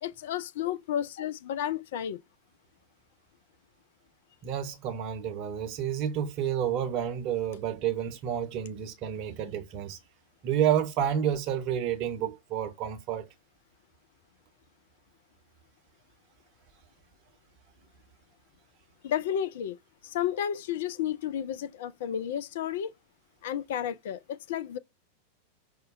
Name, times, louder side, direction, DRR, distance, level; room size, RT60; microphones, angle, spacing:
voice 1, 0.0-2.2 19.0-19.8 20.0-22.9 23.4-24.8, left 10 dB, 55° left, 0.3 m, -32 dB
voice 2, 4.4-10.0 10.4-13.3, right 9 dB, 40° right, 0.7 m, -30 dB
5.4 x 2.1 x 2.4 m
figure-of-eight pair, 90°, 0 cm